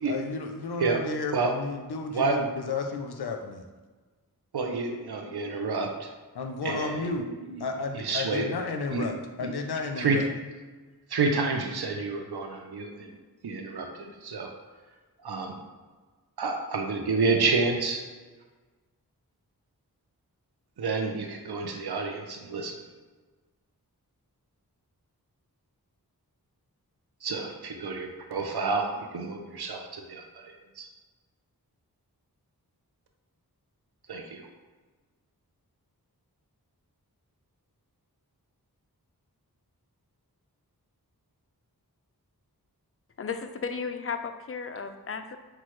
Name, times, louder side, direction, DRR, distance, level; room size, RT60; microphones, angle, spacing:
voice 1, 0.1-3.6 6.3-7.3 7.6-10.3, left 4 dB, 90° left, 5 dB, 0.6 m, -33 dB
voice 2, 4.5-6.1 6.6-7.1 7.4-7.6 7.9-8.5 8.9-9.1 9.4-9.5 10.0-10.2 11.1-14.5 15.2-15.6 16.4-18.0 20.8-22.8 27.2-30.9 34.1-34.5, right 4 dB, 85° right, 3 dB, 0.6 m, -29 dB
voice 3, 43.2-45.4, left 5 dB, 40° left, 8 dB, 0.4 m, -34 dB
5.9 x 2.3 x 3.1 m, 1.4 s
wide cardioid pair, 45°, 38 cm